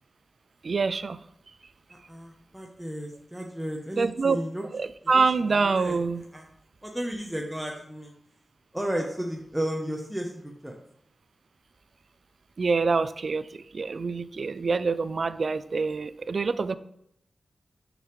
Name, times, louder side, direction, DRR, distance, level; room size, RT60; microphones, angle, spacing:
voice 1, 0.6-1.2 4.0-4.4 4.7-6.2 12.6-16.7, right 4 dB, 65° right, 14 dB, 0.3 m, -26 dB
voice 2, 1.9-4.6 5.0-5.2 5.5-6.0 6.3-6.5 6.8-8.1 8.7-10.8, equal, 10° right, 1 dB, 0.9 m, -33 dB
6.3 x 5.1 x 3.2 m, 0.74 s
cardioid pair, 45°, 0 cm